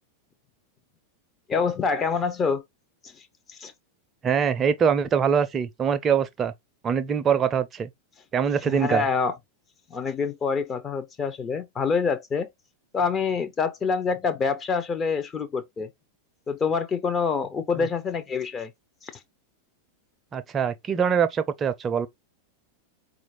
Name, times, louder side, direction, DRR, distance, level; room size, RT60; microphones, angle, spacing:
voice 1, 1.5-2.6 3.0-3.2 3.5-3.7 8.7-9.3 9.9-12.5 12.9-15.9 16.5-18.7 19.0-19.1, left 5 dB, 25° left, 0.5 m, -26 dB
voice 2, 4.2-6.5 6.8-7.9 8.3-9.1 17.8-17.9 20.3-22.1, right 7 dB, 25° right, 0.5 m, -23 dB
4.3 x 2.5 x 2.8 m
figure-of-eight pair, 90°, 0 cm